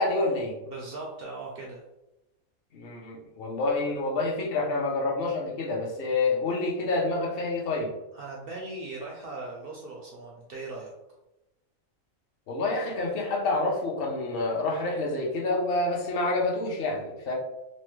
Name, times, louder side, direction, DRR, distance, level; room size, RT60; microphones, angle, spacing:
voice 1, 0.0-0.5 2.7-7.9 12.5-17.3, left 2 dB, 55° left, -1 dB, 0.7 m, -28 dB
voice 2, 0.6-1.8 8.1-10.9, right 2 dB, 70° right, -1 dB, 0.5 m, -39 dB
3.1 x 2.1 x 3.1 m, 0.95 s
omnidirectional pair, 1.5 m